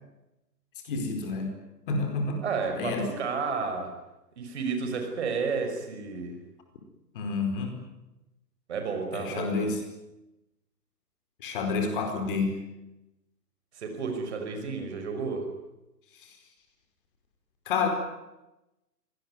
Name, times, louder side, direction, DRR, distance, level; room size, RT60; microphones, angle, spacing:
voice 1, 0.8-1.6 1.9-2.4 2.8-3.1 7.1-7.8 9.1-9.8 11.4-12.6 16.1-16.4 17.7-17.9, left 4 dB, 30° left, 5 dB, 4.7 m, -29 dB
voice 2, 2.4-3.9 4.4-6.4 8.7-9.7 13.8-15.5, right 5 dB, 40° right, 5 dB, 5.6 m, -31 dB
25.0 x 19.0 x 9.6 m, 0.95 s
figure-of-eight pair, 135°, 49 cm